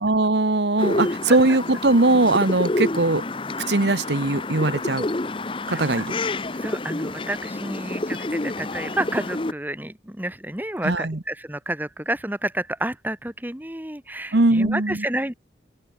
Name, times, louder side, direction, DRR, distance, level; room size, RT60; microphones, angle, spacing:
voice 1, 0.0-3.2 3.7-5.1 5.7-6.2 10.8-11.2 14.3-15.0, right 2 dB, 70° right, 1.3 m, -20 dB
sound 1, 0.8-9.5, left 2 dB, 30° left, 0.8 m, -28 dB
voice 2, 5.7-6.0 6.6-15.3, right 1 dB, 10° right, 1.7 m, -30 dB
open air
head